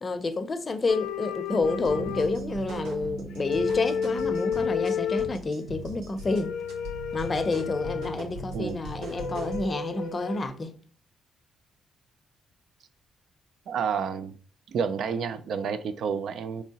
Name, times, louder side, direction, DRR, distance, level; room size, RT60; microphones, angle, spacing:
voice 1, 0.0-6.5 7.1-10.7, left 3 dB, 30° left, 0.5 m, -29 dB
sound 1, 0.9-3.0 3.3-5.4 6.2-8.2 9.2-10.5, left 7 dB, 80° left, 0.4 m, -31 dB
sound 2, 1.6-9.6, right 2 dB, 85° right, 0.9 m, -38 dB
voice 2, 13.7-14.4 14.7-16.6, right 6 dB, 70° right, 0.3 m, -30 dB
4.5 x 2.8 x 2.8 m
cardioid pair, 90°, 0 cm